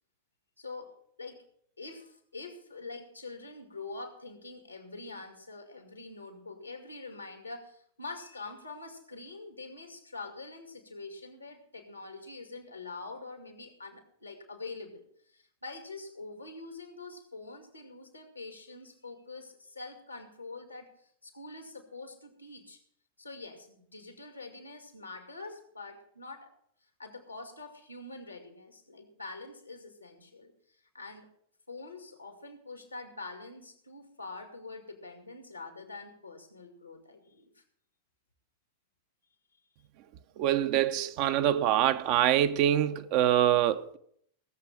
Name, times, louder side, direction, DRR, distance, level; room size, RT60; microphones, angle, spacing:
voice 1, 0.6-0.9 1.2-1.4 1.8-22.8 23.2-26.5 27.0-30.5 30.9-31.3 31.7-37.6, left 3 dB, 85° left, 2.2 m, -45 dB
voice 2, 40.4-44.0, right 11 dB, 45° right, 0.7 m, -25 dB
18.0 x 7.5 x 5.8 m
figure-of-eight pair, 90°, 0 cm